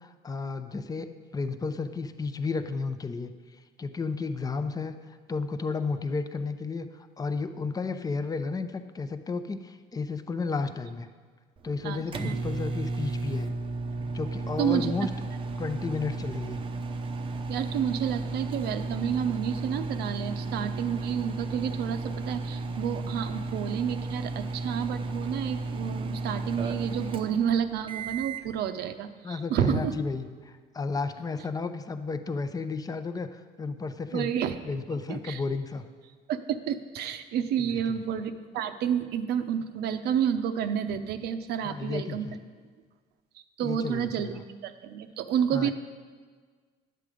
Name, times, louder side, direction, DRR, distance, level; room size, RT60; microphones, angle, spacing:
voice 1, 0.0-3.3 3.8-11.1 11.6-13.5 14.1-15.1 15.6-16.6 29.2-34.3 34.6-35.8 37.6-38.0 41.6-42.4 43.6-44.4 45.5-45.7, left 4 dB, 20° left, 10 dB, 0.6 m, -33 dB
sound 1, 11.6-28.5, right 3 dB, 30° right, 0.7 m, -34 dB
voice 2, 11.8-12.4 14.6-14.9 17.5-30.0 34.1-34.5 35.1-35.4 36.3-42.3 43.6-44.3 44.6-45.7, right 8 dB, 75° right, 9 dB, 0.7 m, -30 dB
10.5 x 7.7 x 5.0 m, 1.5 s
cardioid pair, 110°, 17 cm